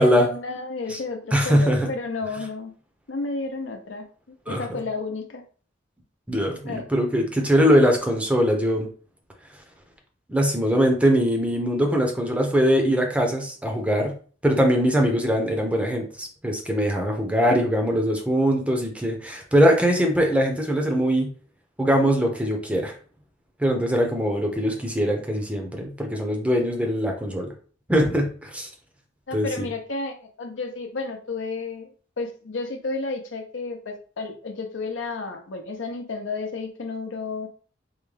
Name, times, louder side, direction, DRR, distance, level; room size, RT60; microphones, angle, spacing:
voice 1, 0.0-2.7 3.1-4.0 4.5-5.4 6.6-6.8 29.3-31.9 32.2-37.5, left 3 dB, 75° left, 4 dB, 0.7 m, -31 dB
voice 2, 1.3-1.9 4.5-4.8 6.3-8.9 10.3-14.1 14.4-21.3 21.8-22.9 23.6-27.5 27.9-28.7 29.3-29.7, equal, 5° right, 2 dB, 0.6 m, -22 dB
3.5 x 2.2 x 3.3 m, 0.41 s
head